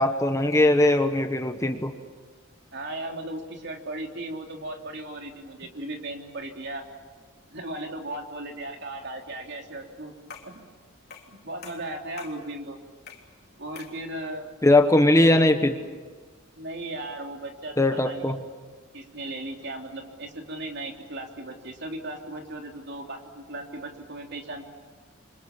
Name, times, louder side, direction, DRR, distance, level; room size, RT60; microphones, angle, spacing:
voice 1, 0.0-1.9 14.6-15.7 17.8-18.4, left 1 dB, 15° left, 7 dB, 1.2 m, -20 dB
voice 2, 2.7-6.8 7.5-10.1 10.4-10.5 11.3-12.8 13.6-14.5 15.2-15.5 16.6-18.3 18.9-24.7, right 1 dB, 55° right, 2 dB, 3.3 m, -36 dB
sound 1, 10.3-10.6 11.1-11.4 11.6-12.4 13.1-13.3 13.8-14.0, left 5 dB, 50° left, 3.3 m, -44 dB
29.0 x 25.5 x 7.4 m, 1.4 s
head